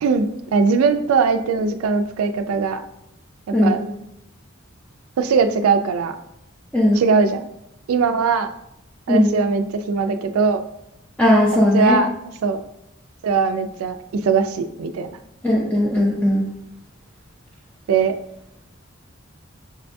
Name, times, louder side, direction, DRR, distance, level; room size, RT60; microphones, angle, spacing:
voice 1, 0.0-2.8 3.5-3.8 5.2-6.2 6.9-7.5 7.9-8.5 9.1-10.6 11.7-12.1 12.4-12.6 13.2-15.1 17.9-18.1, right 5 dB, 85° right, 8 dB, 0.3 m, -20 dB
voice 2, 11.2-12.0 15.4-16.4, left 1 dB, 5° left, -5 dB, 0.4 m, -17 dB
6.5 x 2.2 x 2.5 m, 0.81 s
head